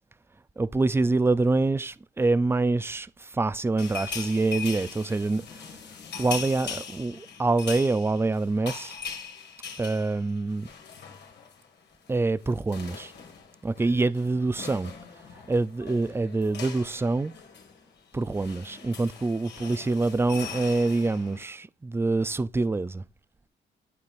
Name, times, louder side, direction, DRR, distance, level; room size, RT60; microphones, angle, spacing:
voice 1, 0.6-5.8 6.2-8.9 9.8-10.7 12.1-13.1 13.6-14.9 15.5-17.3 18.1-23.0, right 3 dB, 10° right, 0.4 m, -26 dB
sound 1, 3.8-11.7 11.9-12.1 12.4-21.4, left 6 dB, 60° left, 2.1 m, -41 dB
11.5 x 4.5 x 2.6 m
cardioid pair, 90°, 20 cm